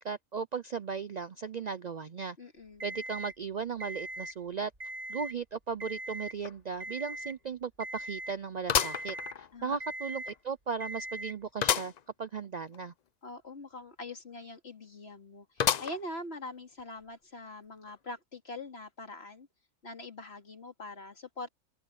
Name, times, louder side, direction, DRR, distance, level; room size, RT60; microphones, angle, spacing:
voice 1, 0.0-2.4 2.8-4.7 5.1-11.9 12.2-12.9, right 5 dB, 85° right, 0.3 m, -36 dB
voice 2, 2.4-2.8 9.5-9.8 13.2-19.5 19.8-21.5, left 2 dB, 45° left, 2.9 m, -43 dB
Alarm, 2.8-3.4 3.8-4.4 4.7-5.4 5.8-6.4 6.8-7.4 7.8-8.4 8.8-9.4 9.8-10.4 10.8-11.4, right 1 dB, 35° right, 4.7 m, -40 dB
sound 1, 6.4-6.5 7.0-7.1 8.7-9.8 10.3-10.4 11.6-12.0 12.4-12.5 12.7-12.8 15.6-16.2 16.8-16.9 17.9-18.0, left 8 dB, 80° left, 0.3 m, -30 dB
open air
omnidirectional pair, 1.5 m